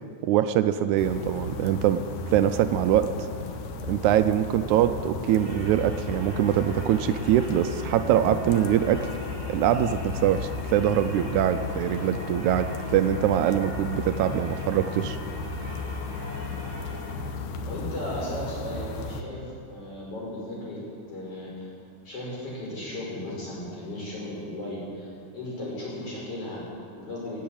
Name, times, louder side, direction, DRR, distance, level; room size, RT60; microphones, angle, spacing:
voice 1, 0.2-2.0 2.3-3.1 3.9-9.1 9.5-15.2, right 11 dB, 80° right, 10 dB, 1.9 m, -23 dB
sound 1, 1.0-19.2, left 3 dB, 85° left, 2.5 m, -34 dB
Singing / Church bell, 5.2-17.2, equal, 65° right, 5.2 m, -44 dB
voice 2, 17.6-20.8 21.1-21.7 22.0-27.4, left 1 dB, 50° left, -6 dB, 6.2 m, -36 dB
18.0 x 8.1 x 8.6 m, 2.5 s
omnidirectional pair, 3.5 m